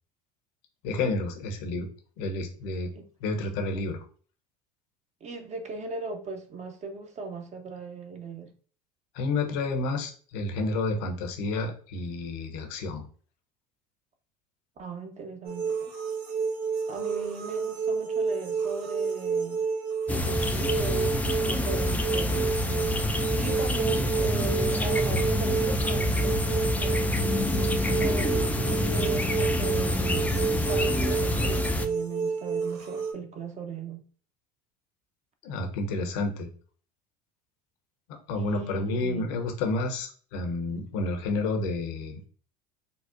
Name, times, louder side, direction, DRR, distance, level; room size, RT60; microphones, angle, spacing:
voice 1, 0.8-1.9 2.2-2.9 3.2-4.0 9.1-13.0 35.4-36.5 38.3-42.2, left 3 dB, 70° left, 4 dB, 0.8 m, -30 dB
voice 2, 5.2-8.5 14.8-15.9 16.9-19.6 20.1-27.3 27.9-30.2 30.7-34.0 38.3-39.3, right 3 dB, 35° right, 5 dB, 0.6 m, -38 dB
sound 1, 15.4-33.1, right 5 dB, 80° right, 0.8 m, -30 dB
sound 2, 20.1-31.9, left 1 dB, 10° left, 0.3 m, -27 dB
3.9 x 2.1 x 2.4 m, 0.42 s
hypercardioid pair, 80°, 20 cm